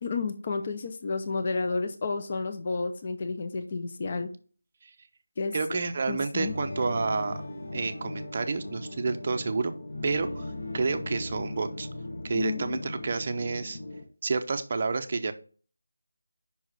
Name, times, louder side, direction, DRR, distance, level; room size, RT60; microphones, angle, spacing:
voice 1, 0.0-4.3 5.4-5.6 6.1-6.5 12.3-12.8, left 4 dB, 25° left, 8 dB, 0.5 m, -31 dB
voice 2, 5.5-7.4 7.7-9.7 10.0-10.5 10.7-11.9 12.2-13.8 14.2-15.3, right 4 dB, 25° right, 7 dB, 0.6 m, -29 dB
sound 1, 6.5-14.0, left 1 dB, 50° left, 1.2 m, -38 dB
5.5 x 4.7 x 5.9 m, 0.41 s
figure-of-eight pair, 175°, 0 cm